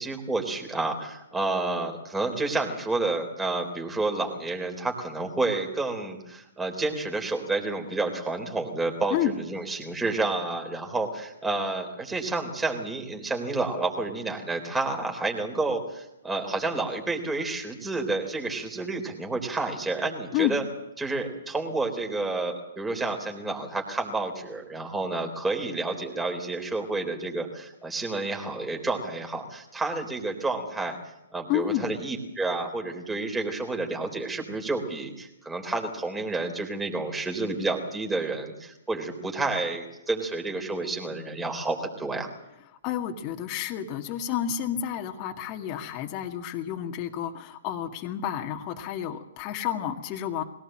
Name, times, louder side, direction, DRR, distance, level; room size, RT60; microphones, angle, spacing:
voice 1, 0.0-20.6 21.0-31.0 31.3-42.3, right 3 dB, 10° right, 3 dB, 3.9 m, -30 dB
voice 2, 31.5-31.9 42.8-50.4, left 10 dB, 35° left, 3 dB, 2.0 m, -30 dB
21.5 x 17.5 x 7.7 m, 0.90 s
hypercardioid pair, 125°, 0 cm